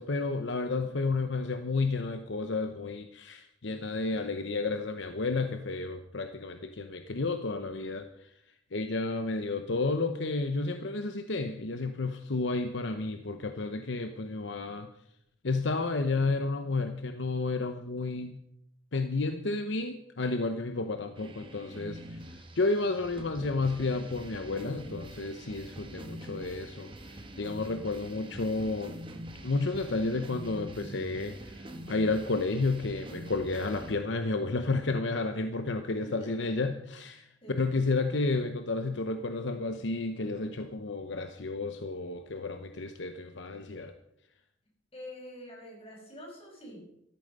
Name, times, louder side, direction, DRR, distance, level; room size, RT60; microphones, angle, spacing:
voice 1, 0.0-8.3 8.7-14.9 15.4-18.4 18.9-22.2 22.6-29.0 29.4-43.9, left 3 dB, 65° left, 7 dB, 0.9 m, -31 dB
sound 1, 21.2-33.9, right 1 dB, 25° right, 1.6 m, -45 dB
voice 2, 36.0-36.5 37.4-37.6 44.9-46.8, equal, 30° left, 0 dB, 5.8 m, -46 dB
14.0 x 14.0 x 5.4 m, 0.80 s
head